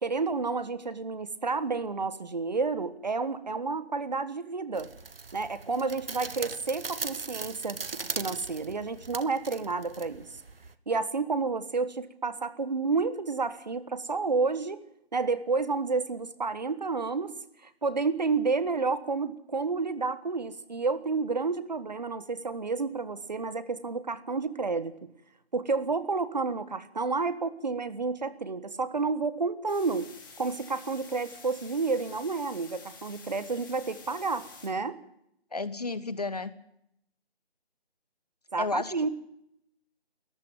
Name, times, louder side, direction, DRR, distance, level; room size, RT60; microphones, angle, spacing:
voice 1, 0.0-4.9 5.3-10.2 10.9-14.8 15.1-17.3 17.6-24.9 25.5-30.1 30.4-35.0 38.5-39.1, right 4 dB, 40° right, 14 dB, 1.4 m, -30 dB
sound 1, 4.8-10.7, right 4 dB, 60° right, 1.3 m, -39 dB
sound 2, 29.7-34.7, left 5 dB, 20° left, 3.0 m, -49 dB
voice 2, 35.5-36.5 38.6-39.1, left 3 dB, 40° left, 15 dB, 0.9 m, -32 dB
22.5 x 14.5 x 9.1 m, 0.76 s
figure-of-eight pair, 165°, 32 cm